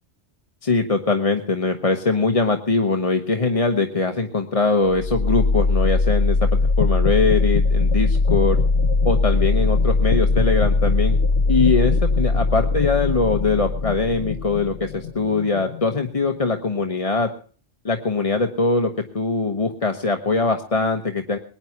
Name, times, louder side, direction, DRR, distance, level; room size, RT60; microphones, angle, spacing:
voice 1, 0.6-8.6 9.0-11.2 11.5-17.3 17.8-21.4, left 3 dB, 30° left, 5 dB, 1.1 m, -22 dB
sound 1, 4.9-16.8, left 3 dB, 70° left, 1.6 m, -20 dB
21.0 x 9.7 x 5.9 m, 0.43 s
omnidirectional pair, 1.2 m